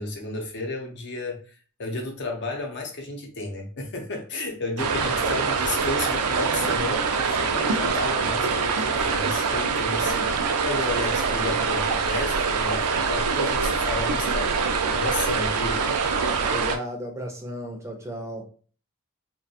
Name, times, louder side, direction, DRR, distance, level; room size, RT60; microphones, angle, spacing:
voice 1, 0.0-14.5 14.9-15.9, left 2 dB, 50° left, 2 dB, 0.6 m, -32 dB
sound 1, 4.8-16.8, right 5 dB, 75° right, 0.4 m, -24 dB
voice 2, 16.5-18.5, right 1 dB, 15° right, 2 dB, 0.5 m, -34 dB
2.4 x 2.1 x 2.7 m, 0.39 s
head